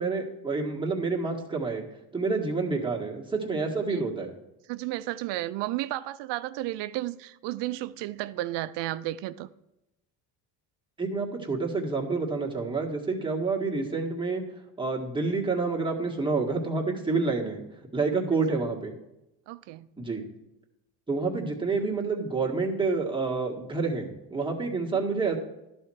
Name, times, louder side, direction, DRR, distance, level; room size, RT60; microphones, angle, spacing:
voice 1, 0.0-1.9 2.1-4.3 11.0-14.4 14.8-17.6 17.9-18.9 20.0-20.2 21.1-25.4, right 4 dB, 10° right, 1.8 m, -28 dB
voice 2, 4.7-9.5 19.5-19.9 24.9-25.0, right 16 dB, 70° right, 0.6 m, -33 dB
11.5 x 4.4 x 6.3 m
supercardioid pair, 85°, 44 cm